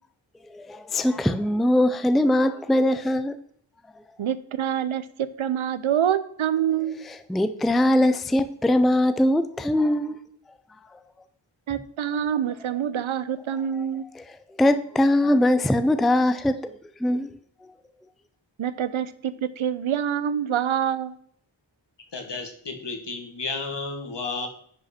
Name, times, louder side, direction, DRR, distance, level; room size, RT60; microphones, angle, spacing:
voice 1, 0.5-3.4 7.1-10.2 13.7-13.9 14.1-16.6 17.0-17.3 17.6-17.7, left 1 dB, ahead, 0.4 m, -22 dB
voice 2, 4.2-7.0 11.7-14.1 18.6-21.2, right 9 dB, 85° right, 0.7 m, -26 dB
voice 3, 22.1-24.5, left 3 dB, 60° left, 1.6 m, -32 dB
10.5 x 5.1 x 4.3 m
wide cardioid pair, 95°, 47 cm